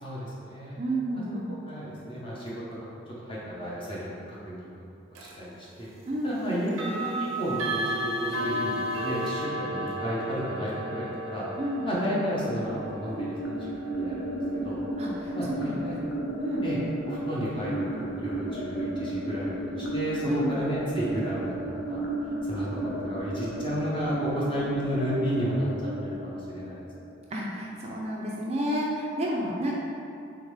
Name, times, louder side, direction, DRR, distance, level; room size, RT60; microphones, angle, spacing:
voice 1, 0.0-0.8 1.1-1.2 1.7-2.6 3.2-4.1 4.4-4.7 5.1-5.9 6.2-11.4 11.8-14.8 15.3-16.0 16.6-16.8 17.0-22.0 22.5-26.9, equal, 25° left, -7 dB, 0.8 m, -32 dB
voice 2, 0.8-1.4 6.1-6.4 11.6-11.9 15.0-15.8 16.4-16.6 20.2-20.6 27.3-29.8, right 1 dB, 30° right, -3 dB, 0.3 m, -30 dB
sound 1, 5.1-5.4 6.7-17.5, right 1 dB, 90° right, 0.5 m, -35 dB
sound 2, 12.3-27.3, right 1 dB, 55° left, 0.5 m, -33 dB
3.6 x 3.5 x 3.2 m, 2.5 s
head